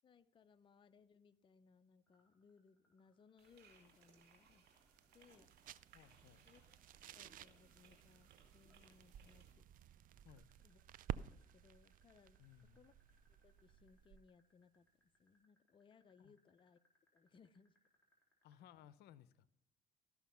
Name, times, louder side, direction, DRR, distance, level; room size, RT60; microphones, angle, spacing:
voice 1, 0.0-4.6 5.1-5.5 6.5-6.6 6.9-9.7 10.6-10.8 11.3-12.5 12.7-12.9 13.4-16.8 17.1-17.8, left 5 dB, 30° left, 10 dB, 0.5 m, -68 dB
sound 1, 2.1-8.8 10.3-18.5, equal, 10° left, 3.4 m, -80 dB
sound 2, 3.4-9.5, right 6 dB, 70° right, 2.4 m, -69 dB
sound 3, 3.7-14.4, right 10 dB, 55° right, 0.4 m, -54 dB
voice 2, 5.9-6.5 10.2-10.5 12.4-12.8 16.2-16.4 18.4-19.5, left 11 dB, 75° left, 16 dB, 0.6 m, -62 dB
13.5 x 6.1 x 5.6 m, 0.81 s
cardioid pair, 110°, 17 cm